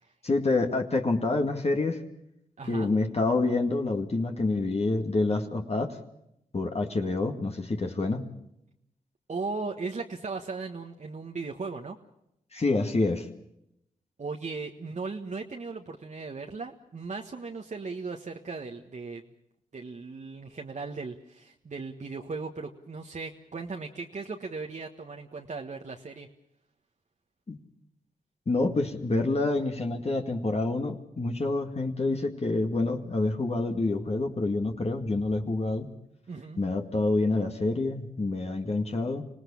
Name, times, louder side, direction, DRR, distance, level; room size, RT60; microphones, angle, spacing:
voice 1, 0.2-2.0 2.7-6.0 6.5-8.3 12.5-13.3 27.5-27.6 28.5-35.9 36.6-39.2, left 2 dB, 40° left, 3 dB, 2.1 m, -27 dB
voice 2, 2.6-2.9 9.3-12.0 14.2-19.3 19.7-26.3 36.3-36.6, right 4 dB, 50° right, 2 dB, 1.5 m, -37 dB
25.5 x 17.5 x 7.2 m, 0.80 s
supercardioid pair, 45°, 16 cm